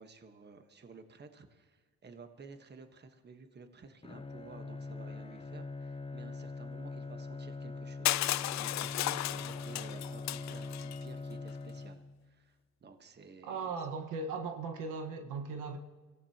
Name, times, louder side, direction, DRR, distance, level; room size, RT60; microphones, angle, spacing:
voice 1, 0.0-13.7, right 4 dB, 35° right, 7 dB, 1.3 m, -53 dB
Bowed string instrument, 4.0-12.4, left 3 dB, 20° left, 0.6 m, -43 dB
Crushing, 8.0-11.0, left 15 dB, 65° left, 0.4 m, -34 dB
voice 2, 13.4-15.8, right 4 dB, 85° right, 5 dB, 1.5 m, -38 dB
25.0 x 16.5 x 2.9 m, 1.4 s
cardioid pair, 90°, 30 cm